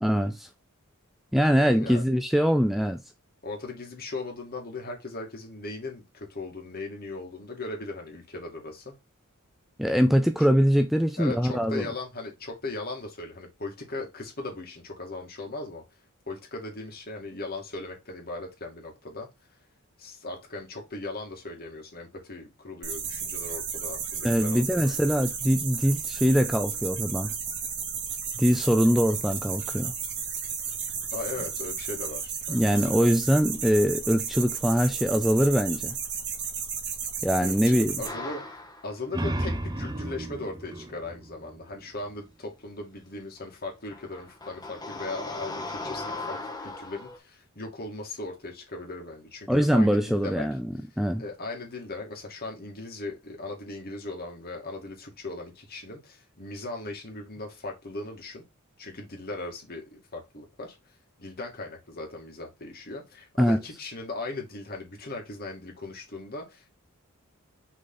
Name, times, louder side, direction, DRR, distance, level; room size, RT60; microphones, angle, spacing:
voice 1, 0.0-0.5 1.3-3.0 9.8-11.9 24.2-27.3 28.4-29.9 32.5-35.9 37.2-37.9 49.5-50.6 51.0-51.2 63.4-63.6, equal, ahead, 0.4 m, -23 dB
voice 2, 1.7-2.0 3.4-8.9 11.2-15.8 16.3-19.3 20.0-24.9 31.1-33.1 37.4-50.5 51.2-58.4 58.8-60.8 61.2-66.6, left 2 dB, 45° left, 2.4 m, -38 dB
sound 1, 22.8-38.1, right 7 dB, 55° right, 2.4 m, -33 dB
sound 2, 38.0-39.1 43.4-43.5 43.9-47.2, left 3 dB, 20° left, 1.7 m, -38 dB
sound 3, 38.9-42.3, right 1 dB, 20° right, 0.8 m, -34 dB
6.5 x 4.0 x 3.9 m
head